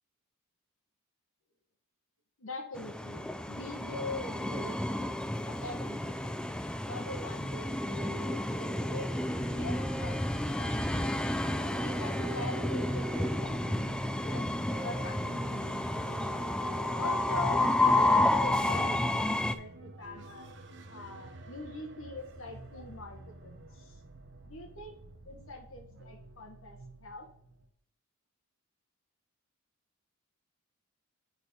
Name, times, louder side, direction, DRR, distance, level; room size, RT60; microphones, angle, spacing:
voice 1, 2.4-6.4 6.9-9.1 9.5-10.2 10.6-11.1 11.8-13.9 14.2-14.4 14.8-15.8 16.9-20.5 20.9-24.0 24.4-25.0 25.2-27.3, left 2 dB, 65° left, 4 dB, 1.5 m, -43 dB
Train, 2.7-19.5, left 1 dB, 5° left, 0.4 m, -31 dB
sound 1, 7.8-17.5, right 1 dB, 20° right, 1.3 m, -46 dB
sound 2, 8.9-27.7, right 2 dB, 60° right, 1.0 m, -50 dB
8.0 x 4.4 x 5.2 m, 0.69 s
head